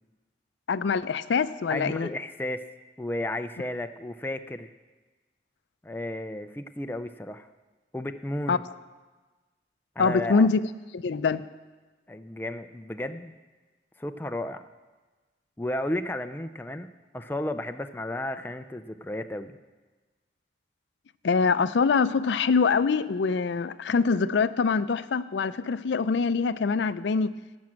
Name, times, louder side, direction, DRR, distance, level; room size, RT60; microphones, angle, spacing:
voice 1, 0.7-2.1 8.5-8.6 10.0-10.6 10.9-11.4 21.2-27.3, left 5 dB, 80° left, 14 dB, 0.4 m, -24 dB
voice 2, 1.7-2.6 3.0-4.7 5.8-7.5 7.9-8.6 10.0-10.5 12.1-13.3 14.0-14.6 15.6-16.9 17.1-19.6, left 1 dB, 10° left, 7 dB, 0.4 m, -33 dB
16.5 x 6.1 x 7.5 m, 1.3 s
head